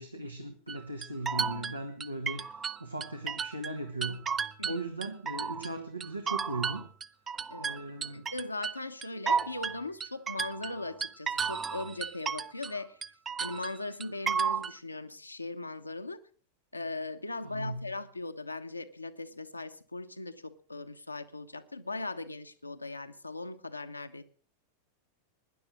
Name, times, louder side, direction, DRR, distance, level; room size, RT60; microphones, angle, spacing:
voice 1, 0.0-6.9 7.6-8.3 17.4-17.9, right 2 dB, 85° right, 5 dB, 1.5 m, -38 dB
sound 1, 0.7-3.7 4.0-5.7 6.0-12.8 13.0-14.8, right 6 dB, 20° right, 0.6 m, -33 dB
voice 2, 7.5-13.0 13.4-16.2 16.7-24.2, left 2 dB, 85° left, 7 dB, 1.1 m, -39 dB
18.0 x 10.5 x 6.2 m, 0.43 s
figure-of-eight pair, 90°, 0 cm